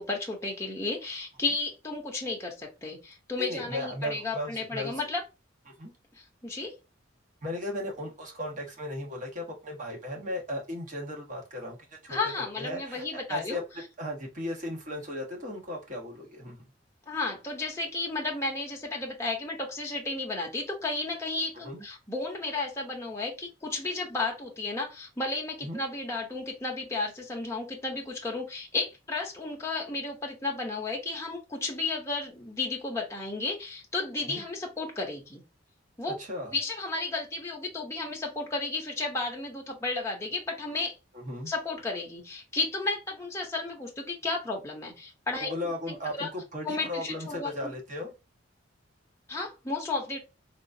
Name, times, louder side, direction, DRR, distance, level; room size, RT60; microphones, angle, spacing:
voice 1, 0.0-5.2 6.4-6.7 12.1-13.6 17.1-35.4 36.0-36.1 36.5-40.9 41.5-45.5 45.9-46.3 46.6-47.5 49.3-50.2, left 3 dB, 15° left, -1 dB, 0.7 m, -33 dB
voice 2, 3.4-5.0 5.7-5.9 7.4-12.3 12.6-13.6 14.0-16.7 21.6-21.8 25.6-25.8 34.3-34.4 36.2-36.6 41.1-41.5 45.4-48.1, left 1 dB, 40° right, 0 dB, 1.2 m, -36 dB
3.8 x 2.4 x 2.6 m, 0.26 s
head